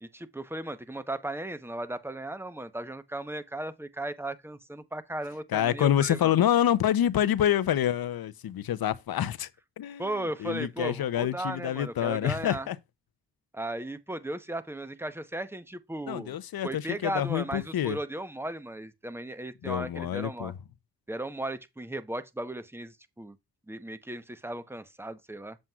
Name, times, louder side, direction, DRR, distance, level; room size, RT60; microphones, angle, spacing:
voice 1, 0.0-6.3 10.0-12.7 13.5-16.4 16.6-20.5 21.1-23.4 23.7-25.6, right 1 dB, 5° right, 0.9 m, -36 dB
voice 2, 5.5-9.5 9.8-10.1 10.4-12.8 16.1-18.0 19.6-20.5, left 10 dB, 60° left, 0.7 m, -27 dB
7.4 x 7.4 x 2.4 m
supercardioid pair, 40°, 41 cm